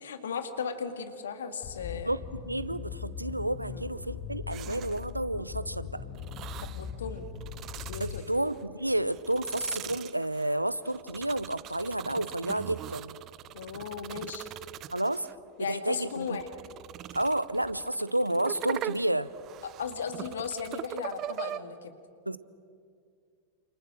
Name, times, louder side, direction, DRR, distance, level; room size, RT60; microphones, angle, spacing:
voice 1, 0.0-2.1 3.7-3.8 6.6-7.3 7.9-8.3 13.5-14.5 15.6-16.5 19.8-21.9, left 6 dB, 65° left, 8 dB, 2.1 m, -36 dB
sound 1, 1.6-8.2, left 7 dB, 40° left, 2.0 m, -40 dB
voice 2, 2.5-6.0 8.0-13.2 14.9-15.3 15.7-16.4 17.1-19.3 22.3-22.4, right 1 dB, 85° right, 16 dB, 0.8 m, -30 dB
sound 2, 4.5-5.2 6.2-6.9 7.4-8.6 9.1-15.3 15.9-21.6, right 13 dB, 35° right, 0.7 m, -41 dB
29.0 x 28.5 x 6.4 m, 2.3 s
figure-of-eight pair, 90°, 0 cm